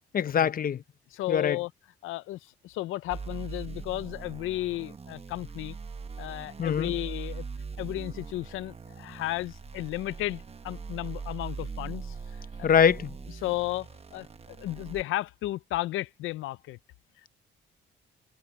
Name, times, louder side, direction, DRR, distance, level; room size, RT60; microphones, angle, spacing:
voice 1, 0.1-0.8 1.3-1.6 6.6-6.9 12.6-13.1, left 8 dB, 45° left, 0.8 m, -23 dB
voice 2, 1.1-1.7 2.0-5.8 6.2-7.5 7.8-12.7 13.4-16.8, left 16 dB, 90° left, 0.6 m, -34 dB
sound 1, 3.1-15.0, right 5 dB, 30° right, 1.0 m, -41 dB
cardioid pair, 90°, 20 cm